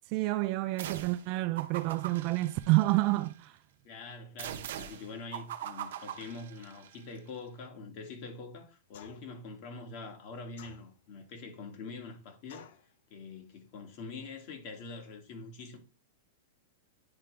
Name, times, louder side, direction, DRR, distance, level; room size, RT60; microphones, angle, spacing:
voice 1, 0.1-3.5, right 19 dB, 40° right, 0.4 m, -28 dB
sound 1, 0.8-1.3 1.6-3.3 4.4-7.0, right 10 dB, 70° right, 0.8 m, -42 dB
voice 2, 3.8-12.7 13.1-15.8, left 3 dB, 45° left, 2.0 m, -44 dB
sound 2, 8.9-9.4 10.6-11.2 12.5-12.9, left 9 dB, 60° left, 0.8 m, -53 dB
9.7 x 3.8 x 3.3 m
supercardioid pair, 150°, 0 cm